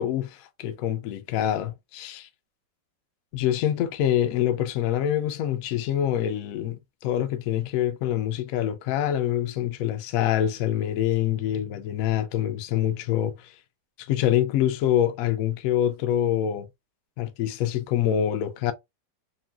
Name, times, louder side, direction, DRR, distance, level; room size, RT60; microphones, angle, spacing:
voice 1, 0.0-2.3 3.3-13.5 14.0-16.7 17.2-18.7, left 11 dB, 75° left, 0.8 m, -25 dB
3.1 x 2.7 x 2.2 m
omnidirectional pair, 2.0 m